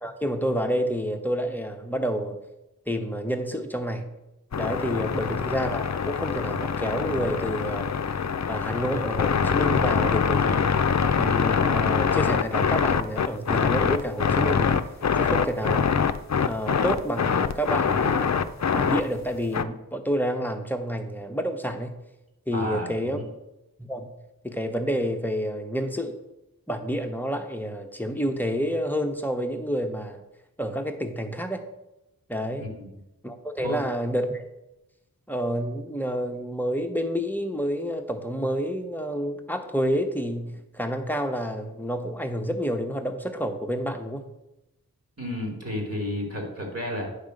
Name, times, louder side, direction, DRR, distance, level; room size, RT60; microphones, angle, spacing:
voice 1, 0.0-2.4 2.9-4.1 4.6-7.9 8.5-10.7 11.2-14.8 15.2-15.9 16.4-22.0 22.5-23.2 23.8-24.1 24.4-26.1 26.7-30.2 30.6-31.6 32.3-32.7 33.2-34.4 35.3-44.3, equal, 5° left, 4 dB, 1.0 m, -29 dB
sound 1, 4.5-19.6, left 6 dB, 50° left, 0.5 m, -24 dB
voice 2, 22.5-23.3 32.6-33.0 33.6-33.8 45.2-47.1, left 1 dB, 40° right, 0 dB, 2.8 m, -32 dB
9.8 x 3.6 x 6.5 m, 0.93 s
wide cardioid pair, 50°, 36 cm